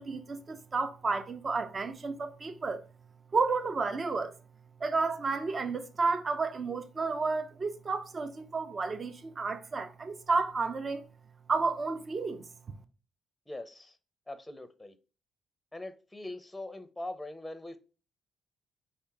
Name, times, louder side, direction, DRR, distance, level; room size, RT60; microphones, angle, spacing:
voice 1, 0.0-2.8 3.3-4.3 4.8-11.0 11.5-12.5, right 4 dB, 40° right, 0.6 m, -31 dB
voice 2, 13.5-14.0 14.3-14.9 15.7-17.8, left 1 dB, 10° left, 0.6 m, -42 dB
5.1 x 2.9 x 3.5 m
cardioid pair, 90°, 0 cm